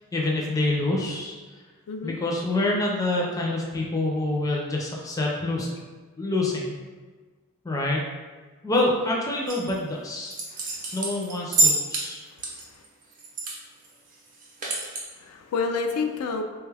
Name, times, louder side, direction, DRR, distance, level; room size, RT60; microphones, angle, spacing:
voice 1, 0.1-1.4 2.0-5.7 6.2-6.8 7.6-8.0 8.6-10.3 10.6-12.2, left 2 dB, 15° left, -2 dB, 0.4 m, -26 dB
sound 1, 9.5-9.7 10.2-12.1 12.4-13.6 13.8-13.9 14.3-15.0, right 2 dB, 35° right, 0.6 m, -26 dB
voice 2, 10.5-11.0 12.3-12.8 15.2-16.4, left 4 dB, 85° left, 5 dB, 0.3 m, -30 dB
3.3 x 2.3 x 3.2 m, 1.4 s
head